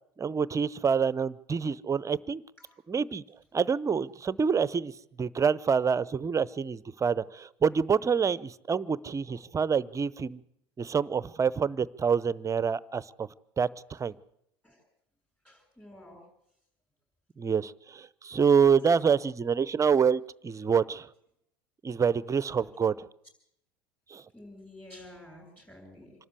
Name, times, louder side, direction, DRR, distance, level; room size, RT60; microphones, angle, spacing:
voice 1, 0.2-2.4 2.9-3.2 3.5-4.9 5.2-10.4 10.8-13.3 13.6-14.1 17.4-21.1 21.8-23.1 24.1-24.2, right 6 dB, 25° right, 19 dB, 0.7 m, -27 dB
voice 2, 15.4-16.2 22.7-22.8 24.3-26.3, left 1 dB, 10° left, -3 dB, 7.3 m, -50 dB
26.0 x 12.5 x 8.3 m, 0.76 s
hypercardioid pair, 75°, 13 cm